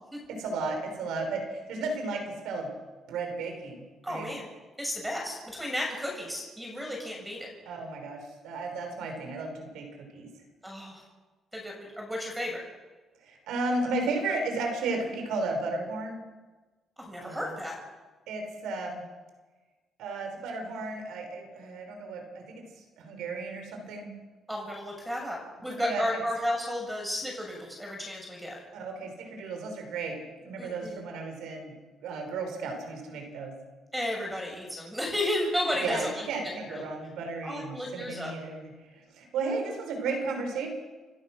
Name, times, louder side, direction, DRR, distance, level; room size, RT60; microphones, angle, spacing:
voice 1, 0.3-2.7 3.1-4.3 7.7-10.3 13.2-16.2 17.2-17.5 18.3-19.0 20.0-22.4 23.0-24.1 25.8-26.0 28.7-30.2 30.4-31.7 32.0-33.5 35.8-38.7 39.1-40.7, right 3 dB, 90° right, 5 dB, 5.5 m, -34 dB
voice 2, 4.0-4.4 4.8-7.5 10.6-11.0 11.5-12.6 17.0-17.8 24.5-28.6 30.6-31.0 33.9-36.2 36.6-36.9 37.4-38.3, left 1 dB, 5° right, 0 dB, 6.9 m, -33 dB
28.5 x 14.5 x 6.4 m, 1.3 s
cardioid pair, 90°, 0 cm